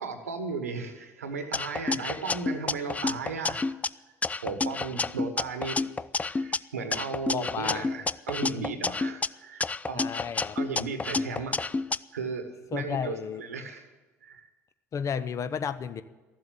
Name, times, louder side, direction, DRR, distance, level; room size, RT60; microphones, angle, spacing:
voice 1, 0.0-3.7 4.4-5.8 6.3-10.1 10.5-11.7 12.1-13.8 14.2-14.5, right 4 dB, 85° right, 8 dB, 1.2 m, -35 dB
sound 1, 1.5-3.9 4.2-6.6 6.9-9.3 9.6-12.0, left 3 dB, 20° left, 0.4 m, -29 dB
voice 2, 4.6-5.0 7.3-7.9 9.9-10.6 12.7-13.4 14.9-16.0, left 7 dB, 40° left, 12 dB, 0.8 m, -33 dB
14.0 x 7.7 x 9.0 m, 1.2 s
hypercardioid pair, 60°, 8 cm